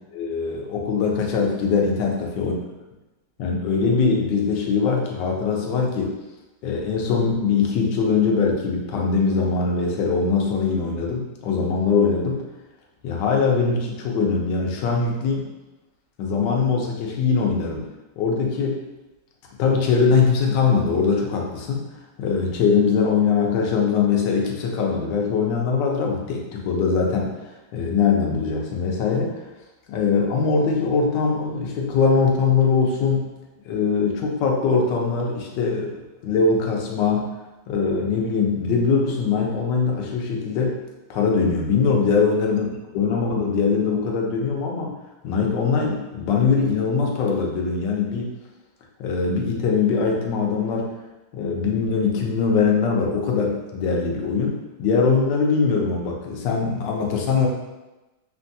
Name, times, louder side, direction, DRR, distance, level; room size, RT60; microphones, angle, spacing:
voice 1, 0.1-2.1 2.4-2.5 3.4-6.2 6.6-12.4 13.0-15.5 16.2-17.9 18.2-18.8 19.6-21.9 22.2-27.3 27.7-29.4 29.9-33.3 33.6-35.9 36.2-37.3 37.7-40.8 41.1-42.7 42.9-45.0 45.2-48.3 49.0-50.9 51.3-57.5, left 5 dB, 85° left, 0 dB, 1.2 m, -22 dB
3.3 x 2.2 x 2.6 m, 1.1 s
omnidirectional pair, 1.9 m